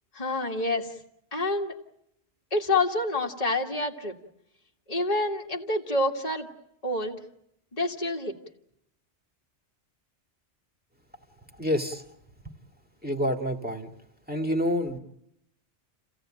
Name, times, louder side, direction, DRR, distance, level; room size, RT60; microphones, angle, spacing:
voice 1, 0.1-1.0 1.3-1.8 2.5-4.2 4.9-6.5 6.8-7.2 7.7-8.3, left 2 dB, 35° left, -1 dB, 1.8 m, -27 dB
voice 2, 11.6-12.0 13.0-13.9 14.3-15.0, equal, 10° right, 3 dB, 2.1 m, -27 dB
30.0 x 16.0 x 8.9 m, 0.79 s
omnidirectional pair, 1.2 m